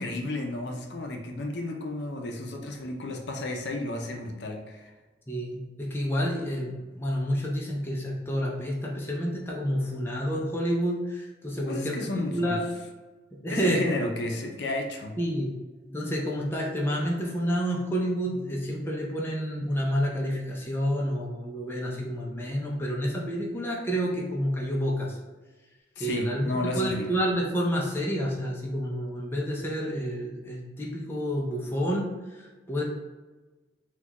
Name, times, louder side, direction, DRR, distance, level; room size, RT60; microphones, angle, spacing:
voice 1, 0.0-4.9 11.7-12.6 13.5-15.2 26.0-27.2, left 2 dB, 65° left, 2 dB, 0.5 m, -32 dB
voice 2, 5.3-12.6 13.4-13.8 15.2-15.6 15.8-25.2 26.0-32.8, equal, 10° left, -3 dB, 0.5 m, -29 dB
4.1 x 2.3 x 2.9 m, 1.2 s
head